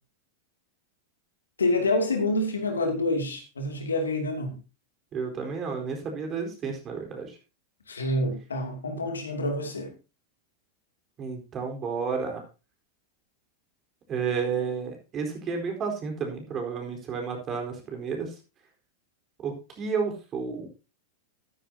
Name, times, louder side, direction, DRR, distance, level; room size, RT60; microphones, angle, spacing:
voice 1, 1.6-4.6 7.9-9.9, left 2 dB, 90° left, 3 dB, 2.7 m, -27 dB
voice 2, 5.1-7.3 11.2-12.4 14.1-18.3 19.4-20.7, right 5 dB, 35° right, 3 dB, 4.2 m, -31 dB
13.0 x 10.0 x 2.9 m, 0.31 s
hypercardioid pair, 100°, 0 cm